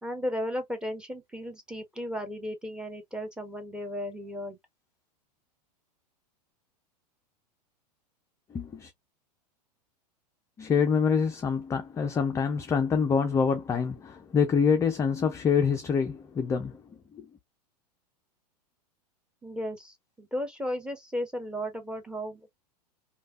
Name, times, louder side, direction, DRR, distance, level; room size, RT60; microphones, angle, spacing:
voice 1, 0.0-4.6 19.4-22.5, equal, 5° right, 0.8 m, -35 dB
voice 2, 8.5-8.9 10.6-16.8 17.1-17.3, left 6 dB, 15° left, 0.4 m, -26 dB
3.2 x 2.2 x 2.3 m
hypercardioid pair, 100°, 21 cm